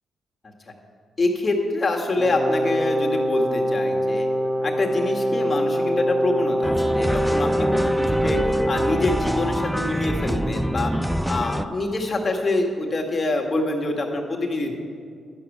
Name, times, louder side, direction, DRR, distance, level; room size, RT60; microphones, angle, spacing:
voice 1, 1.2-4.3 4.6-8.4 8.7-10.9 11.3-14.7, left 2 dB, 35° left, 1 dB, 1.8 m, -25 dB
Brass instrument, 2.2-9.1, equal, 30° right, 1.2 m, -23 dB
sound 1, 6.6-11.7, equal, ahead, 0.4 m, -26 dB
11.5 x 6.9 x 8.5 m, 2.2 s
cardioid pair, 75°, 0 cm